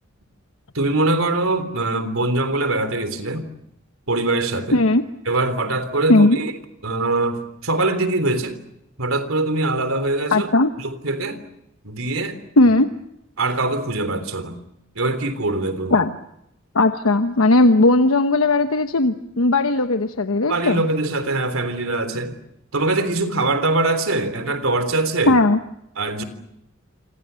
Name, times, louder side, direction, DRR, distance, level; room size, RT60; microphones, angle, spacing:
voice 1, 0.7-3.5 4.1-4.8 5.3-6.5 6.8-8.6 9.0-10.5 10.8-11.4 11.8-12.4 12.7-12.8 13.4-14.6 15.0-16.0 20.5-22.4 22.7-25.4 26.0-26.2, right 2 dB, 80° right, 10 dB, 3.5 m, -23 dB
voice 2, 4.7-5.0 6.1-6.4 10.3-10.7 12.6-12.9 15.9-16.1 16.7-20.8 25.3-25.6, left 2 dB, 85° left, 8 dB, 1.1 m, -17 dB
28.0 x 25.0 x 7.0 m, 0.81 s
head